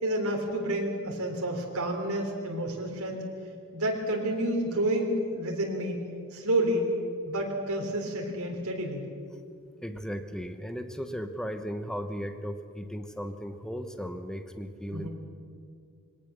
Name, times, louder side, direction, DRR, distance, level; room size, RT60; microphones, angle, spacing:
voice 1, 0.0-3.3 3.7-6.9 7.2-9.0 14.9-15.1, right 1 dB, 80° right, 0 dB, 3.4 m, -29 dB
voice 2, 9.8-15.1, equal, 5° left, 8 dB, 1.0 m, -36 dB
22.0 x 18.5 x 6.9 m, 2.2 s
head